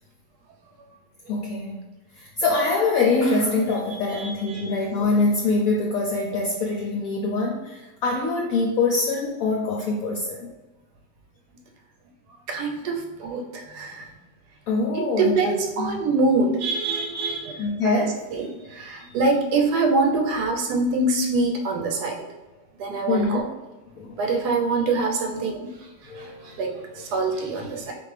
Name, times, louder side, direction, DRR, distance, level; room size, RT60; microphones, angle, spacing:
voice 1, 1.3-1.8 2.1-10.5 14.7-16.0 17.6-18.2 23.1-23.5 23.9-24.4 26.1-27.1, left 3 dB, 70° left, -1 dB, 0.9 m, -24 dB
voice 2, 4.2-4.7 12.5-14.0 15.0-18.1 18.3-22.2 22.8-23.4 24.2-25.7 26.2-27.9, right 3 dB, 70° right, 2 dB, 1.2 m, -25 dB
4.5 x 2.5 x 3.2 m, 1.1 s
omnidirectional pair, 1.9 m